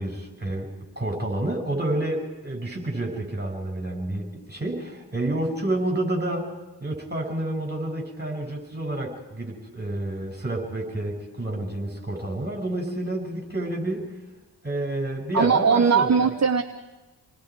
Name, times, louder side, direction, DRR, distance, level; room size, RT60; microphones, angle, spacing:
voice 1, 0.0-6.5 6.8-14.1 14.6-16.3, right 1 dB, 25° right, 2 dB, 6.6 m, -29 dB
voice 2, 15.3-16.6, right 6 dB, 40° right, 8 dB, 1.0 m, -19 dB
28.0 x 20.5 x 4.8 m, 1.1 s
wide cardioid pair, 90°, 40 cm